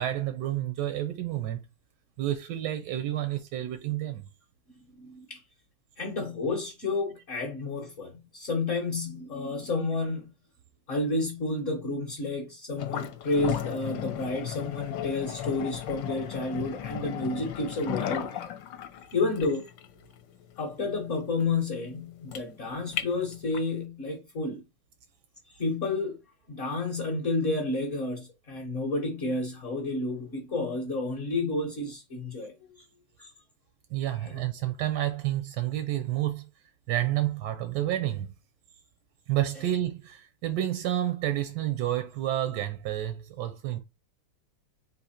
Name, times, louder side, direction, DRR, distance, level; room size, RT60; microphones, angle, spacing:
voice 1, 0.0-1.6 2.2-4.3 33.9-36.5 36.9-38.3 39.3-43.8, right 13 dB, 75° right, 1.0 m, -30 dB
voice 2, 5.0-5.4 6.0-10.3 10.9-18.5 19.1-19.7 20.6-24.6 25.5-26.2 26.5-32.8 33.2-33.3 34.2-34.4, left 2 dB, 50° left, 1.1 m, -31 dB
sound 1, 12.8-23.8, left 10 dB, 75° left, 1.3 m, -36 dB
4.0 x 2.8 x 4.3 m
omnidirectional pair, 2.3 m